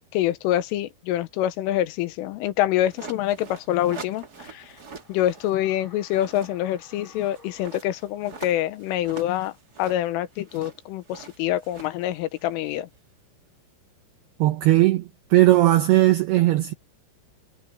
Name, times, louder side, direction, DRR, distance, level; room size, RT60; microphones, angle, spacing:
voice 1, 0.1-4.7 5.1-9.5 9.8-12.9, left 13 dB, 80° left, 3.6 m, -26 dB
sound 1, 2.8-5.6 5.9-13.0, right 4 dB, 45° right, 1.2 m, -44 dB
sound 2, 3.6-8.7 9.0-9.1, left 2 dB, 10° left, 6.0 m, -55 dB
voice 2, 14.4-16.7, right 16 dB, 80° right, 2.3 m, -18 dB
omnidirectional pair, 5.8 m